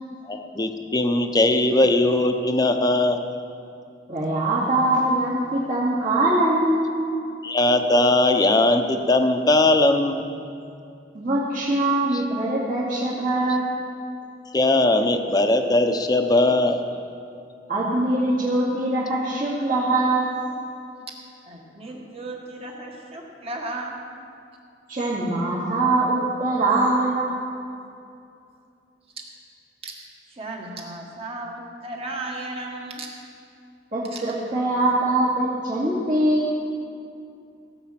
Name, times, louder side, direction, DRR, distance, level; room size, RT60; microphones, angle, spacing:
voice 1, 0.3-3.2 7.4-10.3 12.1-12.2 14.5-16.8, left 2 dB, 20° left, 6 dB, 0.8 m, -19 dB
voice 2, 4.1-6.9 11.1-13.7 17.7-20.4 24.9-27.3 33.9-36.6, right 2 dB, 50° right, -11 dB, 2.6 m, -22 dB
voice 3, 21.4-24.0 29.8-29.9 30.3-33.1 34.1-34.2, right 2 dB, 35° right, 0 dB, 1.8 m, -35 dB
17.5 x 8.0 x 5.9 m, 2.5 s
head